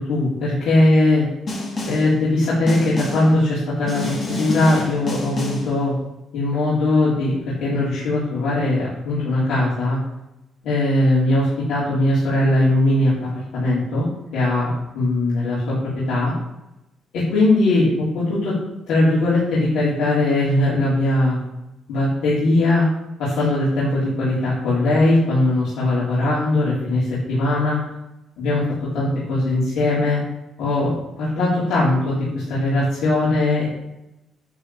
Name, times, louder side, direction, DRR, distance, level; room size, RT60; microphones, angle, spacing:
voice 1, 0.1-1.2 1.8-5.9 6.3-10.0 10.6-14.1 14.3-15.8 16.1-16.3 17.1-18.6 18.9-21.4 21.9-22.9 23.2-27.8 28.4-28.6 28.9-30.2 30.6-33.7, left 2 dB, 85° left, -9 dB, 4.7 m, -20 dB
Snare drum, 1.5-2.1 2.7-3.3 3.9-5.7, left 2 dB, 30° left, 2.5 m, -28 dB
11.0 x 5.3 x 7.3 m, 0.88 s
cardioid pair, 175°, 0 cm